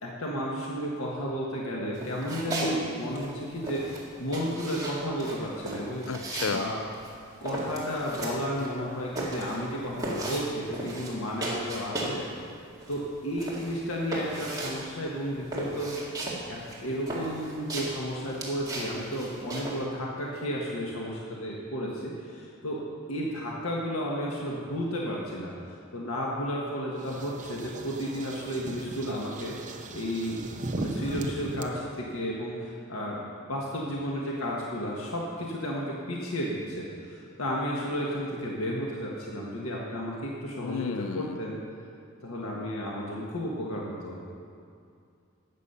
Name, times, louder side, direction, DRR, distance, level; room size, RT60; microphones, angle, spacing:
voice 1, 0.0-3.8 4.2-6.0 6.5-6.8 7.4-12.2 12.9-16.0 16.5-22.8 23.1-25.5 25.9-33.2 33.5-41.6 42.2-44.2, equal, 85° left, -3 dB, 1.5 m, -33 dB
sound 1, 1.9-2.8 3.0-12.3 12.6-19.8, right 1 dB, 20° right, 2.0 m, -36 dB
voice 2, 6.1-6.7 40.6-41.4, left 6 dB, 70° left, 13 dB, 0.4 m, -32 dB
sound 2, 27.0-31.6, right 2 dB, 35° right, 0.7 m, -37 dB
12.5 x 8.4 x 5.6 m, 2.4 s
head